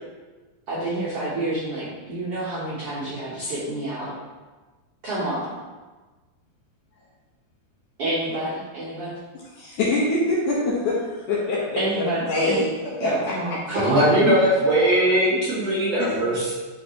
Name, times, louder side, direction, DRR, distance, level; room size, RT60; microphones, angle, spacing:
voice 1, 0.7-4.1 5.0-5.5 8.0-9.1 11.8-12.6 13.0-14.1, right 1 dB, 75° right, 1.3 m, -28 dB
voice 2, 9.3-13.3 13.7-13.8 15.6-15.7 16.0-16.1, left 2 dB, 65° left, 2.2 m, -25 dB
voice 3, 13.7-16.5, right 1 dB, 50° right, 2.2 m, -20 dB
10.5 x 4.0 x 2.9 m
omnidirectional pair, 4.6 m